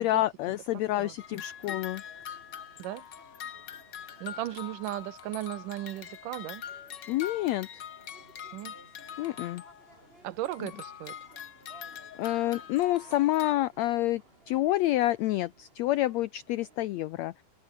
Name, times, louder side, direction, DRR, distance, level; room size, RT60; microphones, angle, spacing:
voice 1, 0.0-2.0 7.1-7.8 9.2-9.6 12.2-14.2 14.5-17.3, left 15 dB, 90° left, 1.5 m, -28 dB
sound 1, 1.0-16.8, right 2 dB, 15° right, 5.1 m, -58 dB
voice 2, 1.0-1.4 2.8-3.0 4.2-6.6 8.5-8.7 10.2-11.1, right 15 dB, 75° right, 2.5 m, -36 dB
sound 2, 1.2-10.0 10.4-13.5, left 9 dB, 65° left, 1.1 m, -44 dB
omnidirectional pair, 3.8 m